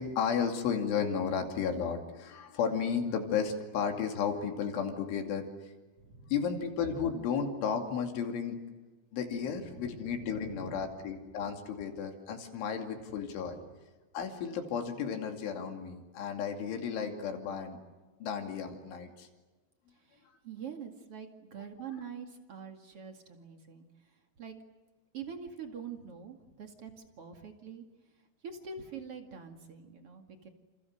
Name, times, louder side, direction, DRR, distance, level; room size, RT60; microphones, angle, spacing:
voice 1, 0.0-5.7 6.3-8.6 9.1-13.6 14.1-17.8 18.2-19.3, left 6 dB, 70° left, 4 dB, 4.9 m, -33 dB
voice 2, 6.0-6.3 9.3-9.4 9.7-10.8 13.5-13.6 20.1-23.9 24.4-24.5 25.1-27.8 28.4-30.5, right 6 dB, 45° right, 4 dB, 2.0 m, -45 dB
30.0 x 28.5 x 6.6 m, 1.2 s
omnidirectional pair, 5.8 m